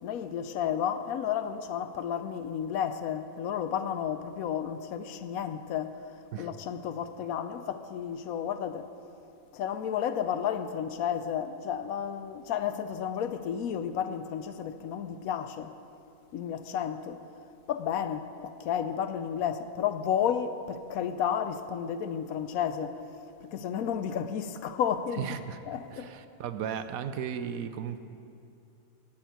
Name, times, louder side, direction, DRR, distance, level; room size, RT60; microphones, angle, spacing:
voice 1, 0.0-6.0 6.4-8.9 9.5-15.7 16.3-17.2 17.7-23.0 23.4-25.3 25.7-26.1, left 8 dB, 75° left, 1.1 m, -32 dB
voice 2, 25.2-25.6 25.9-28.0, right 8 dB, 75° right, 1.1 m, -35 dB
12.0 x 7.2 x 9.2 m
omnidirectional pair, 1.5 m